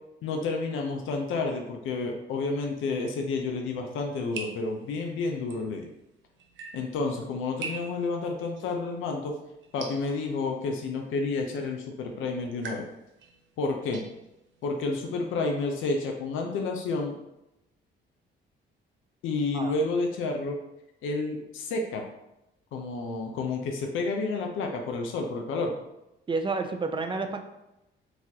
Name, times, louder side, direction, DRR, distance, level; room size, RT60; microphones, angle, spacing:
voice 1, 0.2-5.9 6.7-9.4 9.7-12.9 13.6-14.0 14.6-17.2 19.2-20.6 21.0-22.0 22.7-25.8, left 3 dB, 85° left, 2 dB, 0.6 m, -30 dB
sound 1, 3.9-15.6, right 4 dB, 70° right, 0.6 m, -46 dB
voice 2, 26.3-27.4, right 3 dB, 25° right, 6 dB, 0.4 m, -30 dB
4.0 x 2.4 x 2.7 m, 0.89 s
cardioid pair, 90°, 20 cm